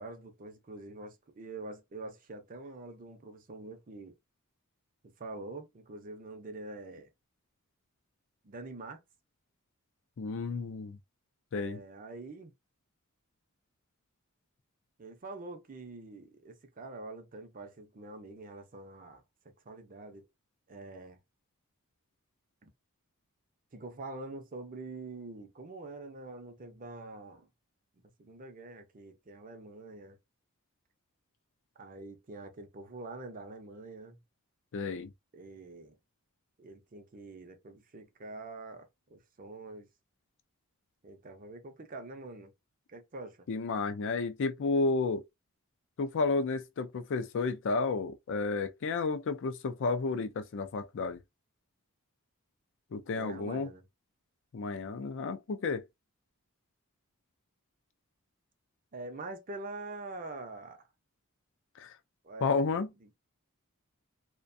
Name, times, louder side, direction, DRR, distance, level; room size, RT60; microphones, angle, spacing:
voice 1, 0.0-4.2 5.2-7.1 8.4-9.0 11.5-12.5 15.0-19.2 19.7-20.2 20.7-21.2 22.6-22.7 23.7-27.5 28.2-30.2 31.8-34.2 35.3-36.0 36.6-39.9 41.0-42.5 42.9-43.5 53.1-53.8 58.9-60.8 62.2-63.1, right 2 dB, 40° right, 0.6 m, -45 dB
voice 2, 10.2-11.0 11.5-11.8 34.7-35.1 43.5-45.2 46.0-51.2 52.9-53.7 54.5-55.8 61.8-61.9 62.4-62.9, left 4 dB, 60° left, 0.4 m, -31 dB
2.4 x 2.2 x 2.6 m
head